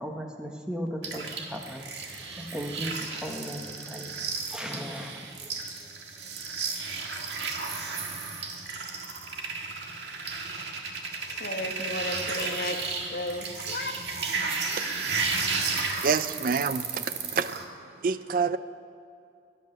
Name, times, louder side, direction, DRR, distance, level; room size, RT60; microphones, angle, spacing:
voice 1, 0.0-1.8 2.2-5.5 5.8-5.9, equal, 5° right, 2 dB, 1.1 m, -37 dB
sound 1, 1.0-17.6, right 4 dB, 85° right, 1.7 m, -33 dB
voice 2, 11.4-12.8 13.1-13.9, left 1 dB, 60° left, 3 dB, 1.4 m, -33 dB
voice 3, 16.0-17.6 18.0-18.6, right 5 dB, 50° right, 14 dB, 0.4 m, -27 dB
20.5 x 9.1 x 6.6 m, 2.4 s
head